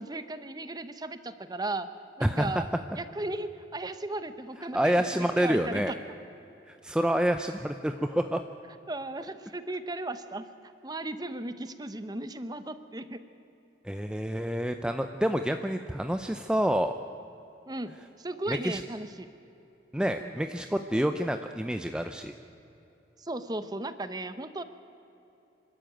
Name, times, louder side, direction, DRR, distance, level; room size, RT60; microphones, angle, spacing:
voice 1, 0.0-1.9 2.2-2.7 3.0-6.0 8.9-10.5 10.8-13.2 17.7-19.3 20.2-20.4 23.2-24.6, right 2 dB, 20° right, 11 dB, 0.9 m, -36 dB
voice 2, 2.2-2.6 4.7-5.9 6.7-8.4 13.8-16.9 18.5-18.8 19.9-22.3, equal, 5° right, 7 dB, 0.5 m, -28 dB
27.0 x 13.0 x 8.9 m, 3.0 s
head